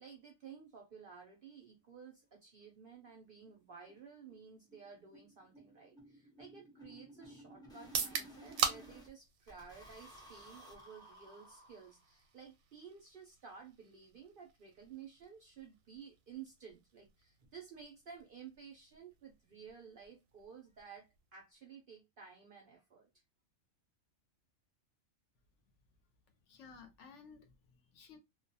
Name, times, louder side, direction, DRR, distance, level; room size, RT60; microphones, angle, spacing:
voice 1, 0.0-23.1, right 6 dB, 60° right, 0.6 m, -54 dB
sound 1, 2.2-2.3 2.6-2.7 3.1-3.2 3.5-3.6 3.9-9.1 9.5-12.3, right 1 dB, 5° left, 0.3 m, -57 dB
sound 2, 7.8-21.6, right 7 dB, 80° right, 1.0 m, -45 dB
voice 2, 26.4-28.2, left 5 dB, 70° left, 0.8 m, -56 dB
2.3 x 2.1 x 2.6 m
omnidirectional pair, 1.4 m